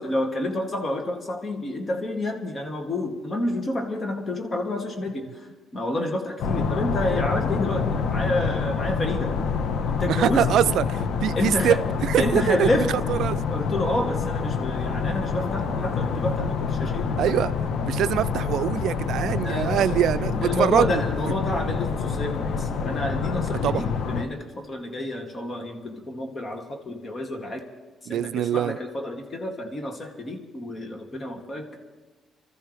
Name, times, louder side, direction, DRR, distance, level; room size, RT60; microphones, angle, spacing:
voice 1, 0.0-5.3 5.7-9.3 10.0-10.5 11.3-11.9 12.2-12.9 13.5-17.1 19.4-20.0 20.4-27.6 28.1-31.7, left 1 dB, 35° left, 2.6 m, -29 dB
sound 1, 6.4-24.2, left 5 dB, 75° left, 1.1 m, -27 dB
voice 2, 10.1-12.7 13.1-13.4 17.2-17.5 17.8-21.0 23.6-23.9 28.1-28.8, right 11 dB, 75° right, 0.4 m, -24 dB
27.0 x 13.5 x 3.4 m
cardioid pair, 90°, 0 cm